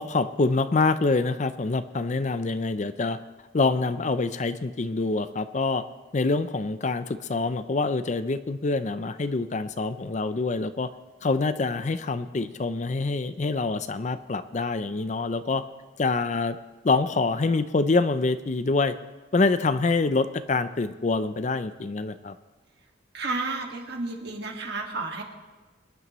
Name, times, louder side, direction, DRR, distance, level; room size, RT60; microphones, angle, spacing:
voice 1, 0.0-3.2 3.5-5.8 6.1-10.9 11.2-15.6 16.0-16.6 16.8-18.9 19.3-22.4, left 3 dB, 35° left, 12 dB, 0.4 m, -25 dB
voice 2, 23.1-25.2, right 3 dB, 55° right, 2 dB, 1.8 m, -31 dB
23.5 x 11.0 x 3.1 m, 1.3 s
head